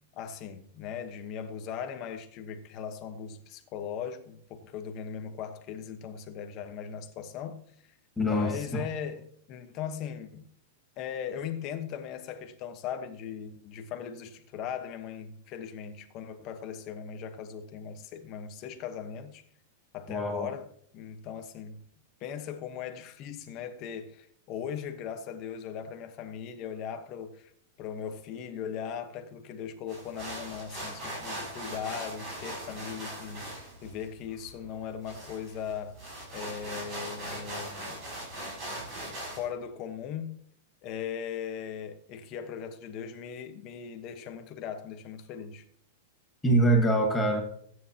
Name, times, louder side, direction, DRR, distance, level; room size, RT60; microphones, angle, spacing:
voice 1, 0.1-7.6 8.3-10.4 11.0-19.4 19.9-20.7 20.9-21.8 22.2-27.5 27.8-36.0 36.3-38.0 39.4-40.4 40.8-45.6, left 8 dB, 25° left, 1.2 m, -39 dB
voice 2, 8.2-8.8 20.1-20.5 46.4-47.4, right 1 dB, 5° left, 1.5 m, -24 dB
sound 1, 29.9-39.5, right 1 dB, 20° right, 6.2 m, -40 dB
22.5 x 9.6 x 2.9 m
supercardioid pair, 175°, 0 cm